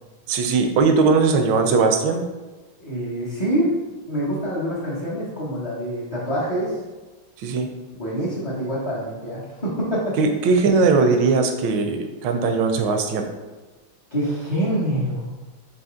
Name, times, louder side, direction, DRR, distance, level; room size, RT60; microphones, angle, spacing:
voice 1, 0.3-2.2 7.4-7.7 10.2-13.3, right 4 dB, 75° right, 5 dB, 1.1 m, -19 dB
voice 2, 2.8-3.8 4.1-6.8 8.0-10.2 14.1-15.3, right 1 dB, 40° left, -8 dB, 0.5 m, -25 dB
4.2 x 2.9 x 3.6 m, 1.2 s
omnidirectional pair, 2.3 m